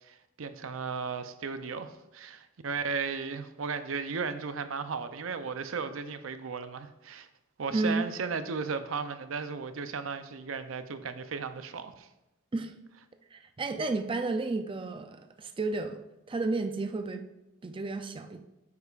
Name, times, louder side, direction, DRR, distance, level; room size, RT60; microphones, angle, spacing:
voice 1, 0.0-7.3 7.6-12.1, right 5 dB, 75° right, 10 dB, 0.6 m, -35 dB
voice 2, 7.7-8.1 12.5-12.7 13.3-16.0 16.3-17.2 17.6-18.4, right 3 dB, 25° right, 7 dB, 0.4 m, -32 dB
9.5 x 8.1 x 2.4 m, 0.97 s
head